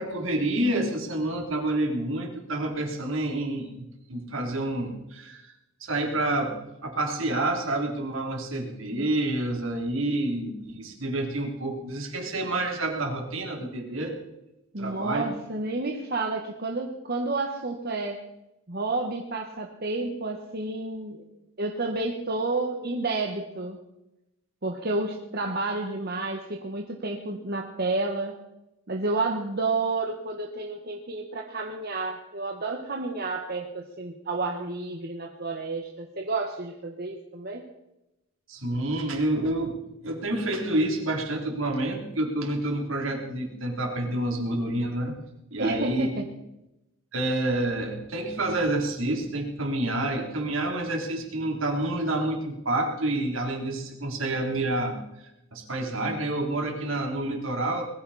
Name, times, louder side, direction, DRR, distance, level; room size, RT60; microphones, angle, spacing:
voice 1, 0.0-5.5 5.8-6.5 6.8-14.1 14.8-15.2 38.5-45.1 45.5-46.1 47.1-57.8, right 1 dB, 75° right, 2 dB, 3.6 m, -28 dB
voice 2, 14.7-18.2 18.7-21.2 21.6-23.8 24.6-28.3 28.9-37.6 45.6-46.2, right 3 dB, 50° right, 2 dB, 1.5 m, -30 dB
21.0 x 15.0 x 4.3 m, 0.90 s
head